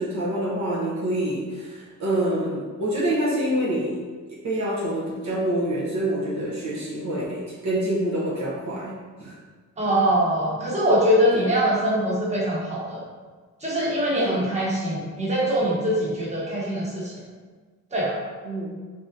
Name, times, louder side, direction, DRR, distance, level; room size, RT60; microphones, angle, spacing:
voice 1, 0.0-4.0 4.3-9.4 11.3-11.5 14.1-14.4 18.4-18.7, right 1 dB, 65° right, -5 dB, 0.9 m, -27 dB
voice 2, 9.8-13.0 13.6-17.1 17.9-18.1, equal, 20° right, -6 dB, 1.2 m, -23 dB
3.8 x 3.6 x 2.7 m, 1.4 s
cardioid pair, 130°, 30 cm